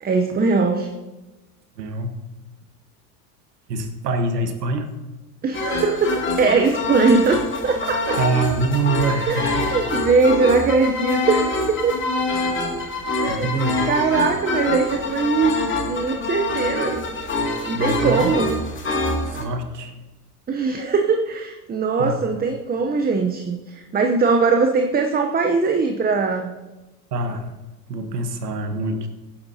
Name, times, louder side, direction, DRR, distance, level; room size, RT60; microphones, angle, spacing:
voice 1, 0.0-0.9 5.4-8.2 9.3-11.9 13.2-13.5 13.9-15.6 15.9-17.1 17.7-18.6 20.5-26.6, right 4 dB, 20° right, 4 dB, 0.8 m, -21 dB
voice 2, 1.8-2.1 3.7-4.9 8.2-9.7 13.3-13.8 17.7-18.3 19.3-19.9 22.0-22.1 27.1-27.5 27.9-29.1, right 3 dB, 90° right, 6 dB, 1.5 m, -25 dB
sound 1, 5.5-19.4, left 2 dB, 25° left, 2.3 m, -25 dB
16.5 x 10.0 x 2.8 m, 1.1 s
hypercardioid pair, 90°, 47 cm